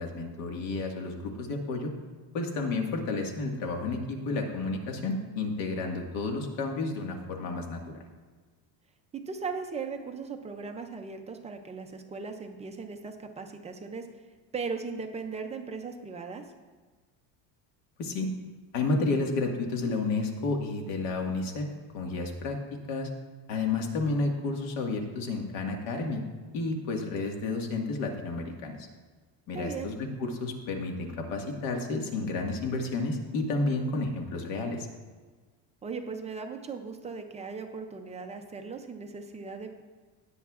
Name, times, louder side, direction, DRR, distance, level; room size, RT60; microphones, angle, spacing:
voice 1, 0.0-1.9 2.3-8.0 18.0-18.3 18.7-21.7 21.9-22.6 22.9-23.1 23.5-26.2 26.5-28.8 29.5-34.9, left 3 dB, 80° left, 2 dB, 1.8 m, -31 dB
voice 2, 9.1-14.1 14.5-16.4 29.5-29.9 35.8-39.8, right 4 dB, 15° right, 4 dB, 0.3 m, -38 dB
17.0 x 8.4 x 2.4 m, 1.4 s
cardioid pair, 160°, 46 cm